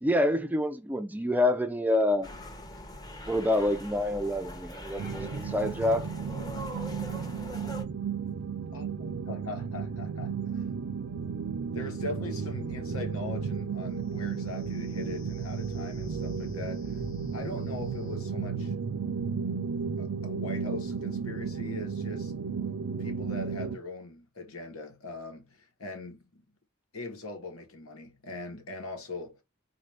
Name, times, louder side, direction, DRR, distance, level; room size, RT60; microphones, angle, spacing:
voice 1, 0.0-2.3 3.3-6.1, left 1 dB, 10° right, 0.3 m, -27 dB
sound 1, 2.2-7.8, left 1 dB, 20° left, 0.7 m, -42 dB
sound 2, 5.0-23.8, right 6 dB, 85° right, 0.5 m, -34 dB
voice 2, 8.7-10.6 11.7-18.7 20.0-22.3 23.0-26.4 26.9-29.4, left 2 dB, 90° left, 1.2 m, -41 dB
sound 3, 12.7-18.2, right 1 dB, 60° left, 0.8 m, -45 dB
4.0 x 2.5 x 3.2 m
head